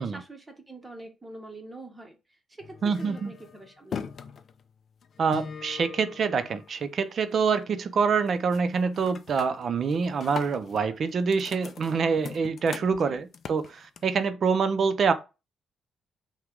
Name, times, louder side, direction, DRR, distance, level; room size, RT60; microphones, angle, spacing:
voice 1, 0.0-4.1 12.9-13.2, right 2 dB, 15° right, 0.8 m, -45 dB
sound 1, 2.6-7.1 7.4-7.9 8.2-8.6 8.9-14.3, left 6 dB, 40° left, 0.4 m, -41 dB
voice 2, 2.8-3.3 5.2-15.1, right 5 dB, 40° right, 0.4 m, -26 dB
5.8 x 2.2 x 3.7 m
cardioid pair, 165°, 0 cm